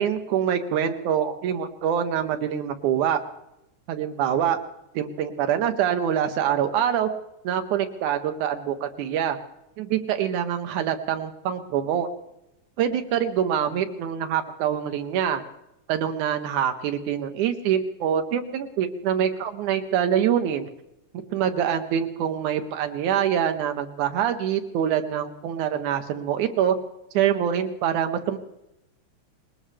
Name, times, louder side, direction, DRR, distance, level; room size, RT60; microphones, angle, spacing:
voice 1, 0.0-3.2 3.9-4.6 4.9-7.1 7.4-9.4 9.8-12.1 12.8-15.4 15.9-20.7 21.3-26.8 27.1-28.4, right 9 dB, 85° right, 7 dB, 2.5 m, -25 dB
20.0 x 20.0 x 3.4 m, 0.88 s
omnidirectional pair, 3.4 m